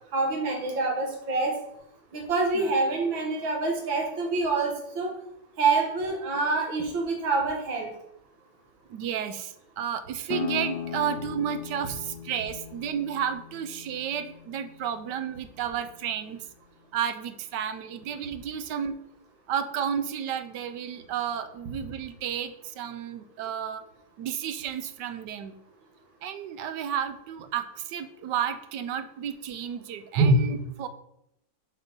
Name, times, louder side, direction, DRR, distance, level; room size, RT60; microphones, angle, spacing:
voice 1, 0.1-1.5 2.1-5.1 5.6-7.9 30.2-30.3, right 3 dB, 90° right, 1 dB, 2.5 m, -26 dB
voice 2, 8.9-16.5 16.9-19.0 19.5-23.8 24.2-25.6 26.2-30.9, right 8 dB, 75° right, 11 dB, 1.2 m, -32 dB
sound 1, 10.3-15.7, left 8 dB, 75° left, 1.0 m, -38 dB
7.3 x 5.3 x 5.4 m, 0.81 s
omnidirectional pair, 2.1 m